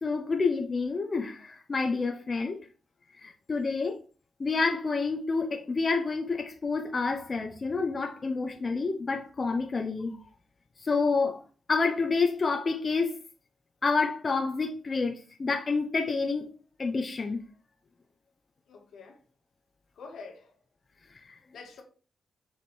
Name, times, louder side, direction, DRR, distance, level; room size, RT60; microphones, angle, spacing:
voice 1, 0.0-2.6 3.2-4.0 4.4-10.1 10.8-11.4 11.7-13.2 13.8-16.5 16.8-17.4 21.3-21.4, left 4 dB, 40° left, 0.8 m, -28 dB
voice 2, 18.7-19.2 19.9-20.5 21.5-21.8, left 4 dB, 85° left, 2.1 m, -46 dB
6.9 x 5.0 x 3.3 m
cardioid pair, 100°, 0 cm